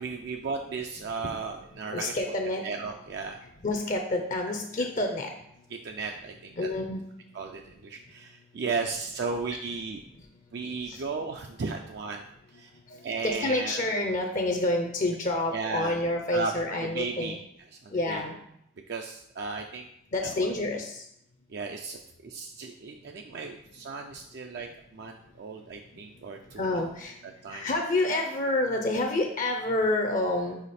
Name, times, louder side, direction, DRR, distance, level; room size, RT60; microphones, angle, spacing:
voice 1, 0.0-2.1 2.6-3.4 5.8-6.7 7.3-10.0 10.5-12.3 12.5-12.7 13.0-13.8 15.5-16.0 16.3-16.5 16.9-17.4 17.8-18.2 18.9-19.9 20.4-20.5 21.5-26.8 27.4-27.7, right 4 dB, 55° right, 3 dB, 0.4 m, -35 dB
voice 2, 1.9-2.6 3.6-5.3 6.6-7.0 10.9-11.0 12.9-13.0 13.2-17.4 17.9-18.3 20.1-21.0 26.6-27.2 27.5-30.6, left 2 dB, 40° left, 4 dB, 0.5 m, -28 dB
5.0 x 4.8 x 4.2 m, 0.76 s
head